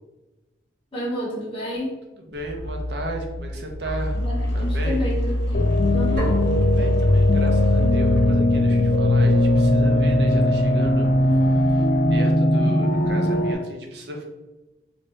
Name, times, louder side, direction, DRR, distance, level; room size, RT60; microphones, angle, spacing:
voice 1, 0.9-1.9 4.1-6.3, equal, 30° left, -5 dB, 1.1 m, -30 dB
voice 2, 2.2-4.1 4.5-5.1 6.6-14.2, right 1 dB, 65° right, 2 dB, 0.7 m, -34 dB
sound 1, 2.3-10.9, left 1 dB, 70° left, 1.0 m, -26 dB
sound 2, 5.5-13.5, left 1 dB, 50° left, 0.4 m, -19 dB
sound 3, 6.2-8.0, equal, 50° right, 1.4 m, -35 dB
3.3 x 2.6 x 3.3 m, 1.1 s
head